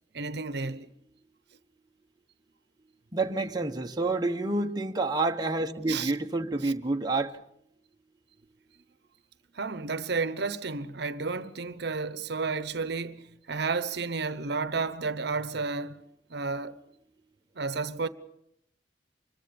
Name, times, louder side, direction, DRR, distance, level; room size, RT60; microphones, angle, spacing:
voice 1, 0.1-0.9 5.9-6.1 6.6-6.7 9.5-16.0 16.3-16.8 17.6-18.1, right 4 dB, 65° right, 0.9 m, -32 dB
voice 2, 3.1-7.3, right 2 dB, 20° right, 1.0 m, -28 dB
25.0 x 21.5 x 7.0 m
head